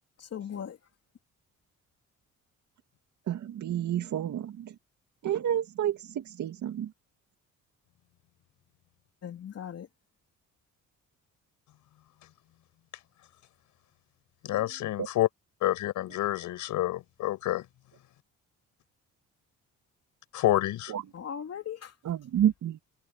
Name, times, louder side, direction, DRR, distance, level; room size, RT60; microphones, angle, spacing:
voice 1, 0.2-0.8 9.2-9.9 21.1-21.9, left 8 dB, 55° left, 3.0 m, -38 dB
voice 2, 3.3-4.7 5.2-6.9 15.0-15.1 20.9-21.0 22.0-22.8, right 10 dB, 70° right, 2.4 m, -30 dB
voice 3, 14.4-15.3 15.6-17.7 20.3-20.9, left 14 dB, 85° left, 5.8 m, -28 dB
cardioid pair, 90°, 30 cm